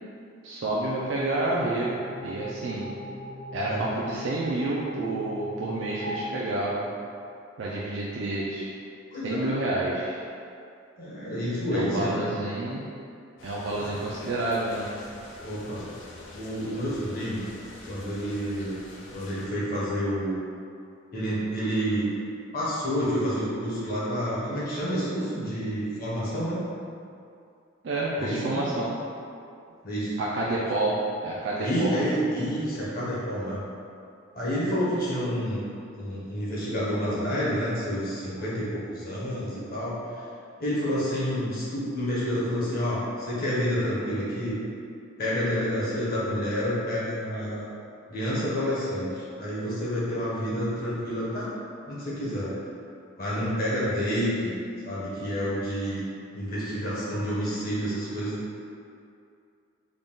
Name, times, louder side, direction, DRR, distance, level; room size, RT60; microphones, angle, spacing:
voice 1, 0.4-2.9 3.5-6.9 7.6-8.7 9.2-10.2 11.7-12.8 13.4-14.9 27.8-29.0 30.2-31.0 31.2-31.9, right 2 dB, 65° right, -6 dB, 0.4 m, -29 dB
sound 1, 0.9-7.4, equal, 20° left, 0.6 m, -40 dB
voice 2, 9.1-9.5 11.0-12.3 13.8-13.9 15.4-15.8 16.3-17.4 17.9-18.7 19.1-20.3 21.1-22.1 22.5-26.6 28.2-28.6 29.8-30.1 31.6-33.6 34.3-35.7 35.9-40.2 40.6-44.6 45.2-47.7 48.1-51.5 51.9-52.5 53.2-54.5 54.8-56.0 56.3-58.4, equal, 50° left, -8 dB, 1.1 m, -29 dB
sound 2, 13.4-19.5, left 1 dB, 70° left, 0.5 m, -46 dB
3.8 x 2.3 x 3.6 m, 2.5 s
head